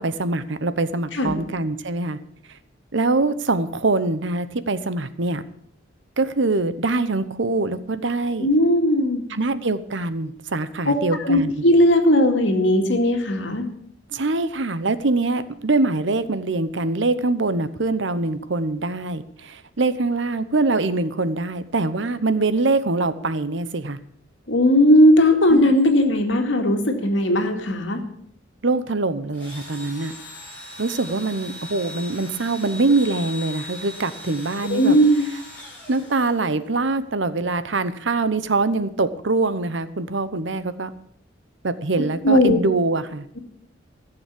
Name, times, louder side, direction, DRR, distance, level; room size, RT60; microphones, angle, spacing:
voice 1, 0.0-2.2 2.9-5.4 6.2-8.5 9.3-11.6 14.1-24.0 25.5-26.0 28.6-30.1 30.8-35.0 35.9-40.9 41.6-43.3, right 3 dB, 70° right, 13 dB, 0.9 m, -23 dB
voice 2, 8.4-9.2 10.9-13.7 24.5-28.0 34.7-35.3 42.2-42.6, equal, 75° left, 4 dB, 2.2 m, -17 dB
Engine / Drill, 29.3-36.7, left 1 dB, 10° left, 6.9 m, -39 dB
15.0 x 7.0 x 8.4 m, 0.67 s
head